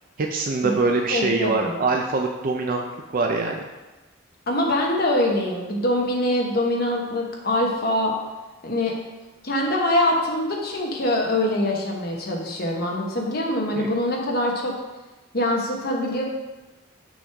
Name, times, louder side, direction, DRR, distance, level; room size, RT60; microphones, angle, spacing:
voice 1, 0.2-2.8 3.1-3.7 13.8-13.9, right 3 dB, 45° right, 2 dB, 0.5 m, -23 dB
voice 2, 1.1-1.7 4.5-8.1 8.6-9.0 9.4-14.7 15.3-16.2, left 1 dB, 45° left, -1 dB, 1.1 m, -24 dB
6.2 x 6.1 x 3.5 m, 1.1 s
head